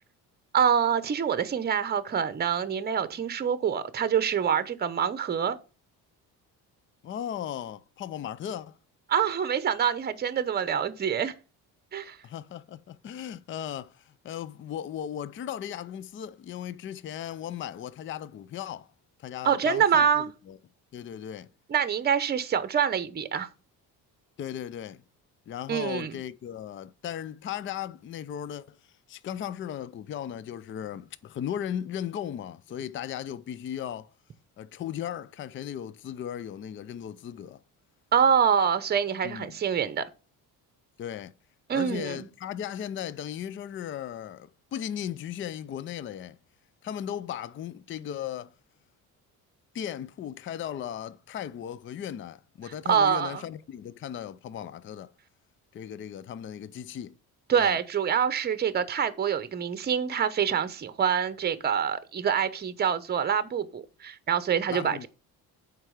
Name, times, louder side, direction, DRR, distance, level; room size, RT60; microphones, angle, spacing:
voice 1, 0.5-5.6 9.1-11.3 11.9-12.2 19.4-20.3 21.7-23.5 25.7-26.2 38.1-40.0 41.7-42.3 52.9-53.4 57.5-65.1, right 7 dB, 25° right, 0.8 m, -26 dB
voice 2, 7.0-8.8 12.2-18.9 19.2-20.6 20.9-21.5 24.4-25.0 25.5-28.8 29.1-34.1 34.6-37.6 39.2-39.6 41.0-41.3 41.7-46.4 46.8-48.5 49.7-55.1 55.7-57.2 57.6-57.8 64.7-65.1, left 10 dB, 35° left, 0.4 m, -37 dB
7.9 x 4.7 x 6.4 m
cardioid pair, 135°, 36 cm